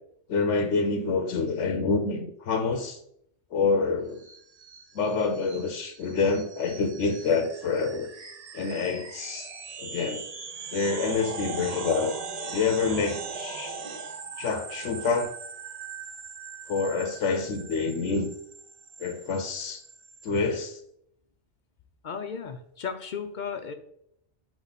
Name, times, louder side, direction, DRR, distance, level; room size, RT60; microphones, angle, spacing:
voice 1, 0.3-3.0 3.5-4.2 4.9-8.1 8.5-9.5 9.8-10.3 10.7-12.1 12.5-13.7 14.4-15.3 16.7-18.3 19.0-19.8 20.2-20.8, left 4 dB, 85° left, 7 dB, 1.0 m, -27 dB
sound 1, 4.2-20.4, right 5 dB, 40° right, 0.6 m, -40 dB
voice 2, 22.0-23.7, left 6 dB, 50° left, 7 dB, 0.6 m, -35 dB
7.3 x 4.4 x 4.0 m, 0.72 s
omnidirectional pair, 1.2 m